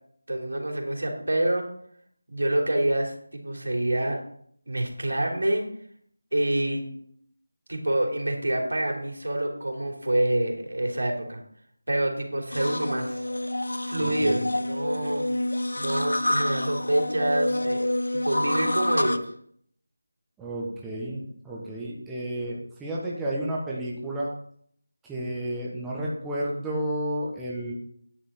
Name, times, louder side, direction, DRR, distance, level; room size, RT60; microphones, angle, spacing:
voice 1, 0.3-1.6 2.3-4.2 4.7-5.6 6.3-6.9 7.7-11.4 11.9-13.3 13.9-15.2 15.7-19.3, right 1 dB, 90° right, 1 dB, 3.1 m, -27 dB
sound 1, 12.5-19.2, left 1 dB, 90° left, 0.8 m, -28 dB
voice 2, 14.0-14.4 20.4-24.3 25.0-27.7, right 1 dB, 5° right, -6 dB, 1.2 m, -31 dB
9.9 x 8.0 x 4.3 m, 0.63 s
figure-of-eight pair, 170°, 0 cm